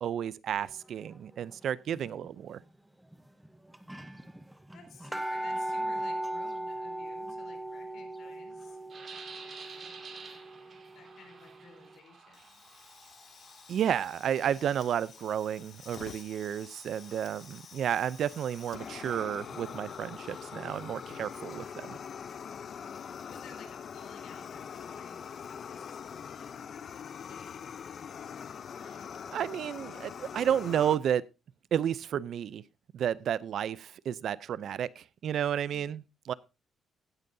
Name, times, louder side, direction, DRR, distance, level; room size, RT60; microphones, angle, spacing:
voice 1, 0.0-2.6 13.7-22.0 28.8-29.0 29.3-31.2 31.7-32.6 32.9-36.3, right 9 dB, 60° right, 0.4 m, -32 dB
sound 1, 1.9-2.3 3.1-3.2 3.4-3.5 3.7-11.4 11.8-11.9, right 1 dB, 5° right, 0.8 m, -38 dB
voice 2, 4.7-8.8 10.9-12.6 23.3-28.0 35.7-36.0, left 5 dB, 70° left, 3.6 m, -55 dB
sound 2, 8.9-20.6, right 4 dB, 40° right, 2.3 m, -53 dB
Fire, 12.3-31.0, left 7 dB, 45° left, 0.5 m, -44 dB
16.0 x 9.2 x 2.7 m
cardioid pair, 155°, 0 cm